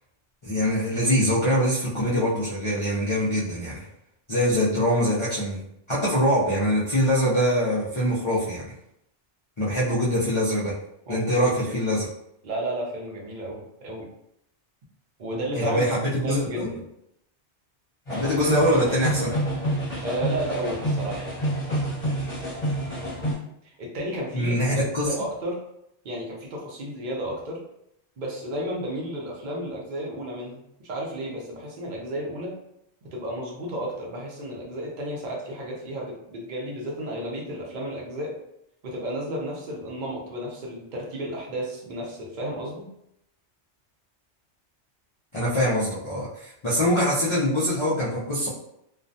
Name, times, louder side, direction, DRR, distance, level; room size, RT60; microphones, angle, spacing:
voice 1, 0.4-3.9 4.3-8.7 9.6-10.8 11.1-12.1 15.5-16.7 18.1-19.4 24.3-25.1 45.3-48.5, equal, 50° left, -8 dB, 0.3 m, -24 dB
voice 2, 12.4-14.1 15.2-16.7 20.0-21.3 23.6-25.6 26.0-27.6 28.2-32.5 33.0-38.4 38.8-42.9, right 1 dB, 50° right, -2 dB, 0.7 m, -32 dB
sound 1, 18.1-23.3, right 1 dB, 30° left, 1.0 m, -28 dB
2.3 x 2.2 x 2.6 m, 0.77 s
omnidirectional pair, 1.2 m